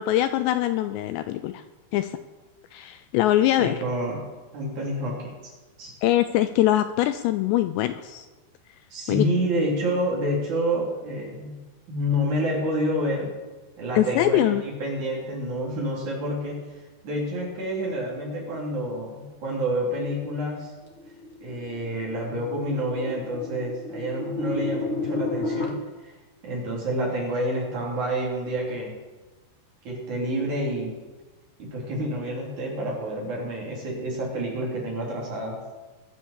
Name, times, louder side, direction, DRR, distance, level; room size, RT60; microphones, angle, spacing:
voice 1, 0.0-1.6 1.9-2.2 2.7-3.8 6.0-8.3 9.1-9.3 13.9-14.6, left 13 dB, 80° left, 11 dB, 2.6 m, -23 dB
voice 2, 3.6-4.2 4.5-5.5 5.8-5.9 8.9-11.5 11.9-13.3 13.8-16.6 17.0-20.7 21.4-26.1 26.4-28.9 29.8-30.9 31.6-35.6, equal, 45° right, -2 dB, 4.3 m, -28 dB
sound 1, 21.0-25.7, left 3 dB, 45° left, 1.6 m, -32 dB
21.5 x 7.4 x 7.3 m, 1.2 s
omnidirectional pair, 5.3 m